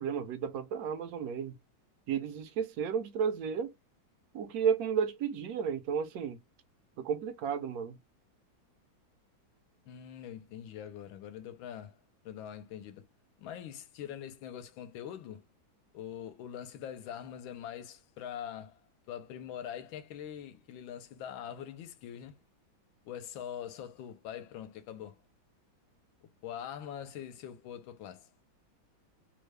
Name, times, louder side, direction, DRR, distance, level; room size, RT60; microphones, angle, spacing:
voice 1, 0.0-1.5 2.1-3.7 4.3-6.4 7.0-8.0, right 7 dB, 70° right, 0.9 m, -32 dB
voice 2, 9.9-12.0 12.2-13.1 13.4-15.5 15.9-18.8 19.1-22.4 23.1-25.2 26.4-28.3, left 9 dB, 80° left, 1.4 m, -43 dB
3.5 x 2.1 x 3.2 m
omnidirectional pair, 2.2 m